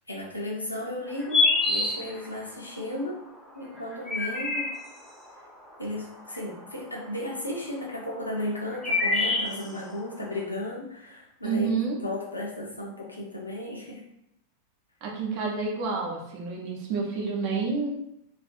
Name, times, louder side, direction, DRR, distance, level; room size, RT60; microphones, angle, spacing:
voice 1, 0.1-3.2 3.5-4.7 5.8-11.7 12.0-14.0, left 1 dB, 85° left, -3 dB, 0.6 m, -34 dB
sound 1, 1.1-2.5 3.8-5.1 6.3-7.0 8.0-10.0, left 3 dB, 5° left, 0.6 m, -26 dB
voice 2, 11.4-12.0 15.0-17.9, right 4 dB, 45° right, -1 dB, 0.7 m, -29 dB
2.5 x 2.4 x 2.4 m, 0.80 s
figure-of-eight pair, 90°, 0 cm